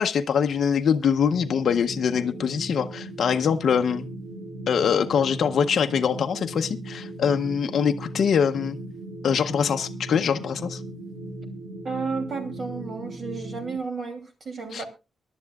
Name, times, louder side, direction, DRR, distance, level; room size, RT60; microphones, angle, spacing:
voice 1, 0.0-4.0 4.7-8.8 9.2-10.8 14.7-14.8, left 7 dB, 55° left, 0.7 m, -23 dB
sound 1, 1.3-13.8, right 1 dB, 65° right, 1.7 m, -38 dB
voice 2, 11.8-14.9, right 4 dB, 40° right, 2.8 m, -32 dB
23.0 x 11.0 x 2.4 m
wide cardioid pair, 170°, 0 cm